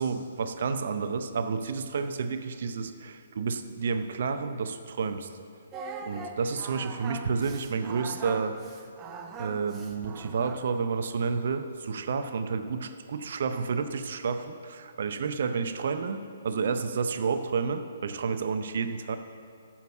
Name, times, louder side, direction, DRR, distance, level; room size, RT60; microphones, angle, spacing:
voice 1, 0.0-5.3 6.0-8.6 9.4-19.2, right 5 dB, 55° right, 9 dB, 0.6 m, -30 dB
Singing, 5.7-10.8, right 4 dB, 20° right, 0.8 m, -41 dB
9.0 x 7.3 x 7.0 m, 2.4 s
figure-of-eight pair, 130°, 0 cm